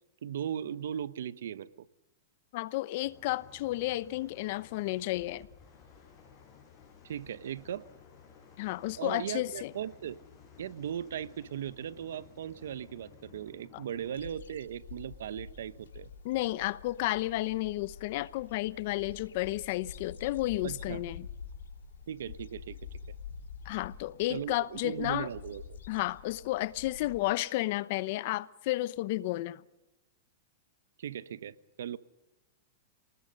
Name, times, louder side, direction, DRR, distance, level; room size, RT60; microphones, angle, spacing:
voice 1, 0.2-1.9 7.0-7.9 9.0-10.2 10.6-16.1 20.6-21.0 22.1-22.8 24.3-25.6 31.0-32.0, right 9 dB, 80° right, 1.0 m, -38 dB
voice 2, 2.5-5.5 8.6-9.7 13.7-13.8 16.2-21.3 23.6-25.3 25.9-29.6, left 17 dB, 55° left, 0.8 m, -32 dB
sound 1, 3.0-14.1, left 6 dB, 30° left, 6.9 m, -56 dB
sound 2, 14.1-27.2, left 6 dB, 90° left, 3.4 m, -47 dB
27.0 x 20.0 x 5.4 m
hypercardioid pair, 135°, 0 cm